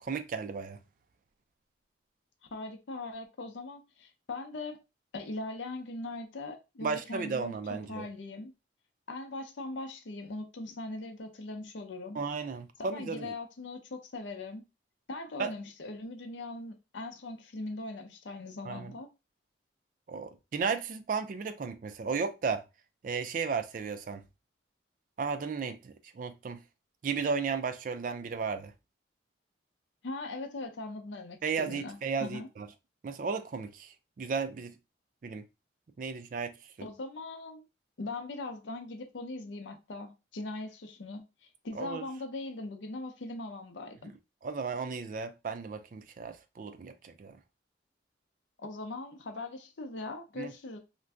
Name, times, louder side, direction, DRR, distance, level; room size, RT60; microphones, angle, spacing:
voice 1, 0.0-0.8 6.8-8.1 12.1-13.3 15.4-15.5 18.7-18.9 20.1-22.6 23.0-24.2 25.2-26.6 27.0-28.7 31.4-32.7 33.0-34.7 35.2-35.5 36.0-36.5 41.7-42.0 44.4-47.4 50.4-50.5, right 5 dB, 45° right, 0.3 m, -34 dB
voice 2, 2.5-4.8 5.1-8.5 9.1-12.2 12.9-14.6 15.1-19.1 30.0-32.5 36.8-37.7 38.0-41.3 41.6-44.1 48.6-50.8, left 2 dB, 80° left, 0.6 m, -40 dB
2.6 x 2.2 x 3.4 m
head